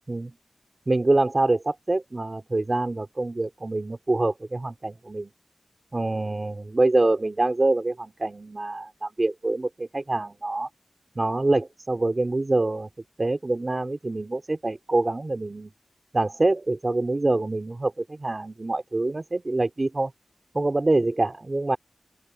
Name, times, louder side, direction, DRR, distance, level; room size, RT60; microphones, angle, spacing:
voice 1, 0.9-5.3 5.9-10.7 11.2-12.9 13.2-15.7 16.1-20.1 20.5-21.8, right 2 dB, 40° right, 3.8 m, -25 dB
open air
wide cardioid pair, 85°, 0 cm